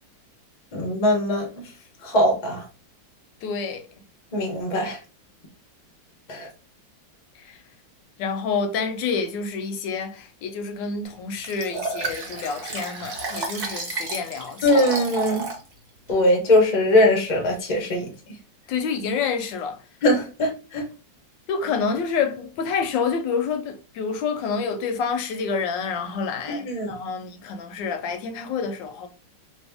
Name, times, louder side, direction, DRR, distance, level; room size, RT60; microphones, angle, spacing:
voice 1, 0.7-1.5 2.0-2.6 4.3-5.0 6.3-6.5 14.6-15.5 16.1-18.1 20.0-20.8 26.5-26.9, left 1 dB, 35° left, 0.7 m, -21 dB
voice 2, 3.4-3.8 7.5-7.6 8.2-14.8 18.7-19.8 21.5-29.1, left 5 dB, 80° left, 1.2 m, -28 dB
Liquid, 11.4-15.6 16.1-16.2, right 3 dB, 45° right, 0.9 m, -31 dB
3.0 x 2.7 x 3.4 m
omnidirectional pair, 2.0 m